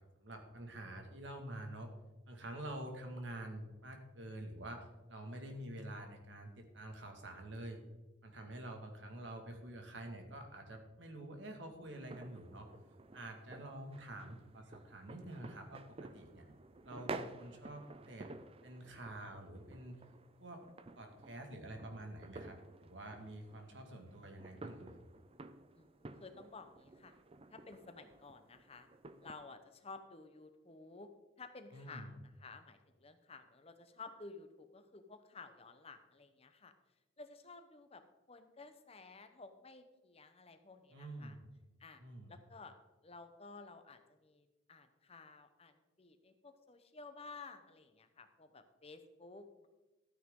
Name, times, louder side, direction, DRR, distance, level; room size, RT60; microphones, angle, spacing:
voice 1, 0.0-1.9 2.3-7.8 8.2-12.7 13.1-16.4 16.8-18.3 18.6-20.0 20.4-20.6 21.0-24.9 31.7-32.1 40.9-41.4 42.0-42.3, right 1 dB, 85° right, 4 dB, 1.9 m, -48 dB
sound 1, 11.9-29.3, right 3 dB, 30° right, 0.5 m, -52 dB
voice 2, 25.7-27.1 27.5-28.9 29.2-31.1 31.4-36.7 37.2-38.0 38.3-41.4 41.8-42.0 42.3-42.8 43.0-49.7, left 3 dB, 35° left, 8 dB, 0.9 m, -54 dB
13.0 x 9.2 x 3.7 m, 1.1 s
head